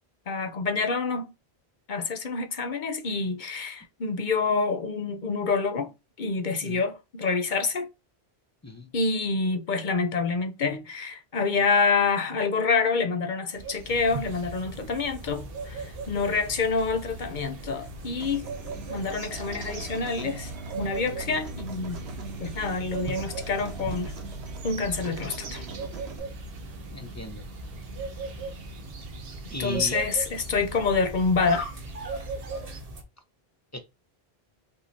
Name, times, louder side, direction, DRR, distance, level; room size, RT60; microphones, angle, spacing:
voice 1, 0.3-1.3 1.9-5.9 6.2-7.9 8.9-18.5 18.9-20.5 20.8-22.0 22.4-24.1 24.6-25.7 29.6-31.7, left 4 dB, 55° left, 0.8 m, -27 dB
sound 1, 13.6-32.8, right 4 dB, 65° right, 1.0 m, -39 dB
sound 2, 13.9-33.0, equal, 40° right, 0.9 m, -42 dB
Human voice / Acoustic guitar, 18.2-26.2, right 5 dB, 85° right, 1.2 m, -44 dB
voice 2, 26.9-27.5 29.5-30.0 33.7-33.8, left 2 dB, 20° left, 0.6 m, -37 dB
5.4 x 3.2 x 2.7 m
omnidirectional pair, 1.1 m